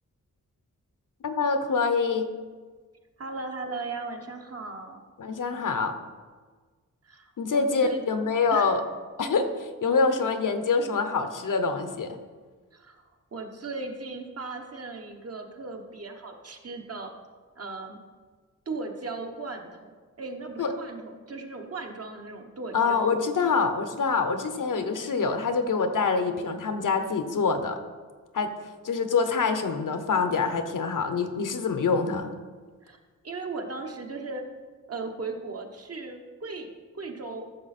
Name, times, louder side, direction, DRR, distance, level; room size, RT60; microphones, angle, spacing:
voice 1, 1.2-2.3 5.2-5.9 7.4-8.8 9.2-12.2 20.6-20.7 22.7-27.8 28.3-28.5 28.8-32.3, left 4 dB, 75° left, 8 dB, 1.0 m, -25 dB
voice 2, 3.2-5.0 7.0-8.0 8.5-8.8 12.7-13.0 13.3-17.1 17.6-18.0 18.7-23.1 32.8-33.0 33.2-34.4 34.9-37.5, right 3 dB, 50° right, 3 dB, 1.2 m, -37 dB
14.0 x 6.7 x 4.3 m, 1.5 s
wide cardioid pair, 130°, 32 cm